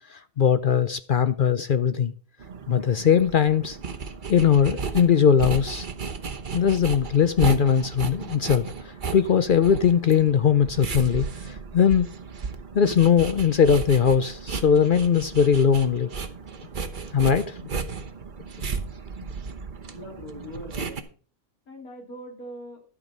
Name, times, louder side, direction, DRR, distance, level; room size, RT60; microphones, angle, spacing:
voice 1, 0.1-2.1 2.7-3.8 4.3-5.9 6.5-12.1 12.7-16.1 17.1-17.6, left 7 dB, 60° left, 0.5 m, -20 dB
sound 1, 2.4-21.0, right 5 dB, 40° right, 1.0 m, -34 dB
voice 2, 19.9-21.0 21.7-22.8, equal, 85° left, 3.5 m, -41 dB
12.0 x 6.2 x 5.4 m
omnidirectional pair, 1.5 m